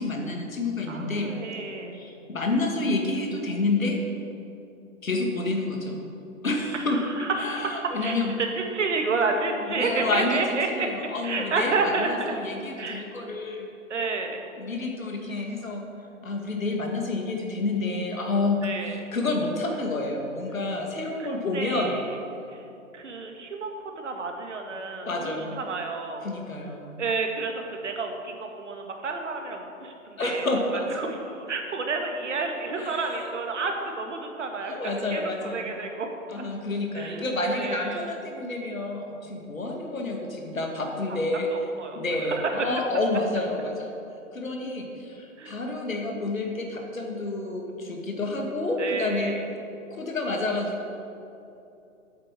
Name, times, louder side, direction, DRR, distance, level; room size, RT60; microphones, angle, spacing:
voice 1, 0.0-1.6 1.9-4.0 5.0-6.0 6.4-7.0 7.4-8.3 9.6-13.7 14.6-15.8 16.2-18.6 18.9-22.0 25.0-25.5 26.2-27.0 30.2-31.2 32.8-33.4 34.6-35.7 36.3-41.5 41.9-44.0 44.3-49.3 49.9-50.9, left 2 dB, 75° left, 2 dB, 2.1 m, -29 dB
voice 2, 0.9-2.0 6.9-10.9 11.2-12.4 12.8-13.0 13.9-14.4 18.6-19.1 21.2-22.2 22.5-22.7 22.9-26.3 27.0-30.5 30.9-34.8 35.1-36.1 36.9-38.0 41.5-42.0 42.3-42.7 45.4-45.6 48.8-49.5, right 3 dB, 60° right, 3 dB, 1.7 m, -30 dB
8.6 x 7.7 x 7.5 m, 2.8 s
figure-of-eight pair, 135°, 41 cm